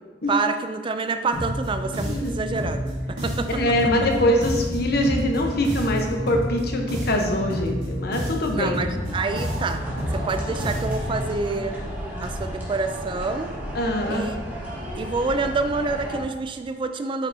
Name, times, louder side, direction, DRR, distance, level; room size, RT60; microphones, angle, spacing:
voice 1, 0.3-2.8 3.1-3.5 8.5-9.8 10.1-11.8 12.2-13.5 14.1-14.4 14.9-17.3, right 3 dB, 30° right, 8 dB, 0.3 m, -27 dB
sound 1, 1.3-11.2, equal, 80° right, 1.9 m, -29 dB
voice 2, 3.5-9.0 13.7-14.3, left 1 dB, 60° left, 2 dB, 1.0 m, -23 dB
sound 2, 3.7-3.8 4.0-4.5 4.8-4.9 5.1-5.2 5.5-5.6 5.9-6.0, left 1 dB, 25° left, 0.7 m, -43 dB
sound 3, 8.8-16.2, equal, 10° right, 1.6 m, -34 dB
9.0 x 5.4 x 2.8 m, 1.4 s
head